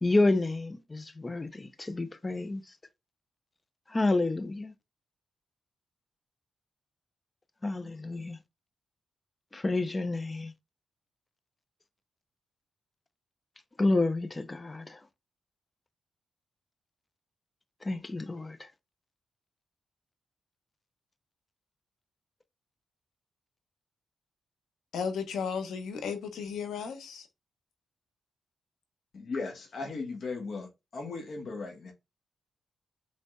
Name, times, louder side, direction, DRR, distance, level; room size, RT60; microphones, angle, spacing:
voice 1, 0.0-2.6 3.9-4.7 7.6-8.4 9.5-10.5 13.8-15.0 17.8-18.7, left 2 dB, 25° left, 0.6 m, -29 dB
voice 2, 24.9-27.3, left 6 dB, 85° left, 1.1 m, -34 dB
voice 3, 29.1-31.9, left 4 dB, 60° left, 1.3 m, -37 dB
5.3 x 3.4 x 2.3 m
cardioid pair, 85°, 0 cm